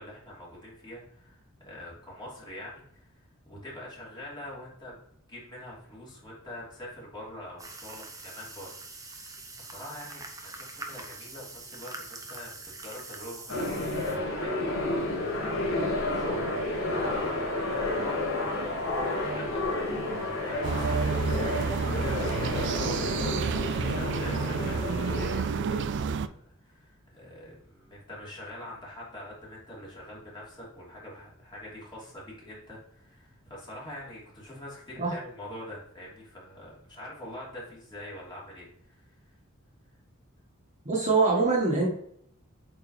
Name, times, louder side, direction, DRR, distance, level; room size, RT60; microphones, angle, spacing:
voice 1, 0.0-3.1 3.4-4.9 5.3-15.4 15.8-21.2 21.5-39.3, left 1 dB, 20° left, -6 dB, 3.0 m, -44 dB
sound 1, 7.6-14.2, right 3 dB, 15° right, 0.9 m, -44 dB
sound 2, 13.5-25.4, left 1 dB, 65° left, 2.2 m, -30 dB
sound 3, 20.6-26.3, right 5 dB, 55° right, 0.4 m, -30 dB
voice 2, 40.8-41.9, right 3 dB, 35° right, -2 dB, 1.7 m, -24 dB
8.4 x 4.4 x 3.3 m, 0.69 s
head